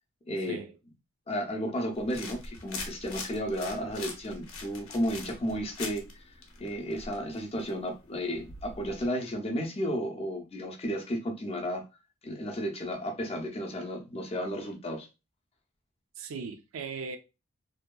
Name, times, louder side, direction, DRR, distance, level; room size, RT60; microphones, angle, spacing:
voice 1, 0.3-0.6 1.3-6.0 6.6-11.8 12.2-15.1, equal, 30° left, 0.5 m, -33 dB
sound 1, 2.0-9.1, left 3 dB, 85° left, 0.6 m, -43 dB
voice 2, 16.2-17.2, right 5 dB, 70° right, 0.4 m, -38 dB
2.7 x 2.2 x 2.2 m
head